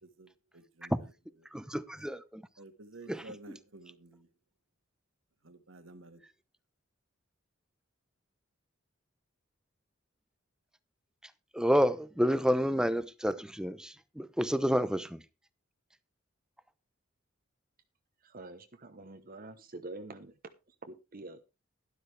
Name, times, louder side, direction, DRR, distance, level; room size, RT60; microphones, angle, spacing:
voice 1, 0.0-1.1 2.6-4.3 5.4-6.2, right 2 dB, 70° right, 1.7 m, -52 dB
voice 2, 1.5-2.4 3.1-3.2 11.5-15.2, equal, 5° right, 0.7 m, -29 dB
voice 3, 18.3-20.3 21.1-21.4, right 2 dB, 45° right, 1.0 m, -45 dB
12.0 x 12.0 x 3.4 m
head